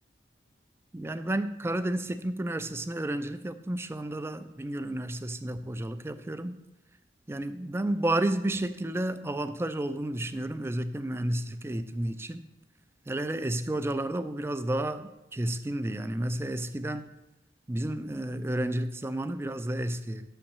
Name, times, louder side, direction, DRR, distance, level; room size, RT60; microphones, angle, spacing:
voice 1, 0.9-6.6 7.3-12.4 13.1-17.0 17.7-20.2, right 1 dB, 15° right, 12 dB, 0.4 m, -31 dB
6.2 x 5.8 x 6.6 m, 0.95 s
head